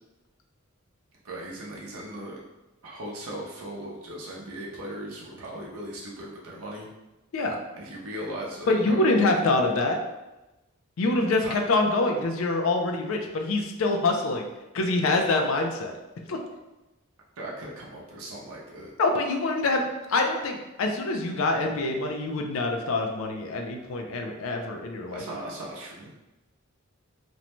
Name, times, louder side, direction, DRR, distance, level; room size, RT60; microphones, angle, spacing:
voice 1, 1.2-2.4 2.8-6.9 7.7-9.1 11.4-11.6 17.4-18.9 25.1-26.1, right 1 dB, 85° right, -3 dB, 0.6 m, -38 dB
voice 2, 8.7-10.0 11.0-14.5 14.7-15.9 16.3-16.4 19.0-25.2, left 2 dB, 70° left, 3 dB, 0.4 m, -25 dB
2.6 x 2.1 x 2.9 m, 1.0 s
head